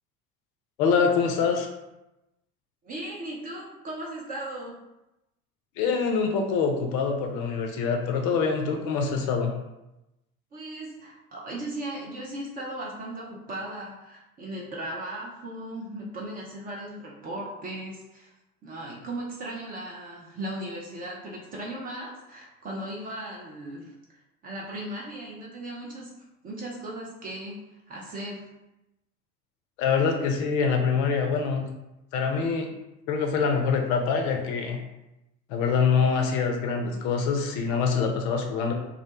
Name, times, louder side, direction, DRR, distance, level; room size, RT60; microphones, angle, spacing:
voice 1, 0.8-1.7 5.8-9.5 29.8-31.6 32.1-32.7 33.1-34.8 35.5-38.7, left 5 dB, 45° left, 3 dB, 0.4 m, -25 dB
voice 2, 2.8-4.8 10.5-18.3 18.6-23.9 24.4-26.1 26.4-28.4, right 1 dB, 20° right, -3 dB, 0.4 m, -37 dB
2.4 x 2.1 x 2.8 m, 0.94 s
figure-of-eight pair, 65°, 42 cm